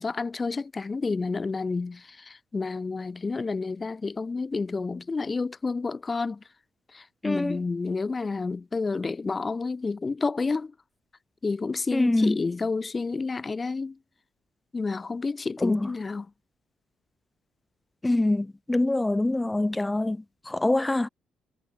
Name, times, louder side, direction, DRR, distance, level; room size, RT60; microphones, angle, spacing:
voice 1, 0.0-6.4 6.9-10.7 11.4-14.0 14.7-16.3, left 4 dB, 30° left, 2.4 m, -30 dB
voice 2, 7.2-7.6 11.9-12.4 15.6-15.9 18.0-20.2 20.5-21.1, left 2 dB, 15° left, 1.6 m, -24 dB
cardioid pair, 90°, 0 cm